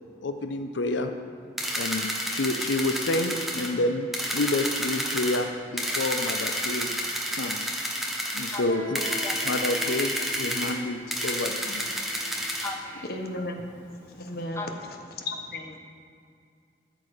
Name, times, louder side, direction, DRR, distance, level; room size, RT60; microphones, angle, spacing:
voice 1, 0.2-1.1 1.7-4.1 4.3-6.9 7.3-7.7 8.3-9.0 9.4-11.9, left 2 dB, 80° left, 7 dB, 0.6 m, -29 dB
sound 1, 1.6-3.7 4.1-5.4 5.8-8.6 8.9-10.7 11.1-12.7, equal, ahead, 1.0 m, -30 dB
voice 2, 7.9-9.5 10.6-10.7 11.9-13.1 14.0-14.9 15.2-15.3, left 2 dB, 15° left, 2 dB, 0.6 m, -40 dB
Guitar, 8.7-14.1, equal, 70° right, 3.0 m, -45 dB
voice 3, 13.1-13.6 14.1-14.6 15.2-15.8, left 2 dB, 55° left, 4 dB, 1.0 m, -34 dB
13.0 x 6.7 x 4.9 m, 2.3 s
head